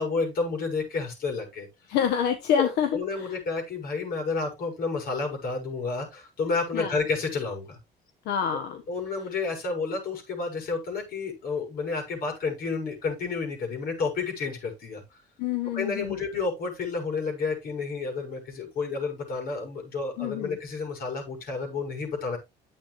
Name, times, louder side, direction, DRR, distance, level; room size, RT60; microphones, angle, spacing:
voice 1, 0.0-1.7 2.5-7.8 8.9-15.0 15.7-22.4, left 4 dB, 60° left, 2 dB, 6.9 m, -30 dB
voice 2, 1.9-2.9 3.2-3.3 6.7-7.0 8.2-8.8 15.4-16.2 20.2-20.6, left 8 dB, 85° left, 7 dB, 1.4 m, -27 dB
11.5 x 8.5 x 2.6 m, 0.23 s
cardioid pair, 110°, 17 cm